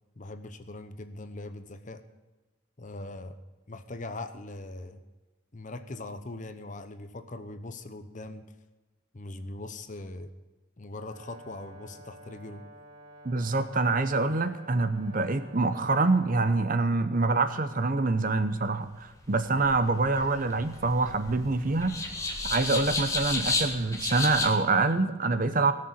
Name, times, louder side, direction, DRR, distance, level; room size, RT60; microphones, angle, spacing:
voice 1, 0.2-2.0 2.8-3.4 3.7-5.0 5.5-8.4 9.1-10.3 10.8-12.6, left 2 dB, 35° left, 9 dB, 0.8 m, -41 dB
Brass instrument, 10.9-16.8, right 1 dB, 60° right, 3.1 m, -51 dB
voice 2, 13.2-22.0 22.4-25.7, right 3 dB, 40° right, 11 dB, 0.7 m, -26 dB
sound 1, 19.2-24.5, left 3 dB, 15° left, 1.5 m, -32 dB
17.5 x 6.7 x 8.4 m, 1.2 s
head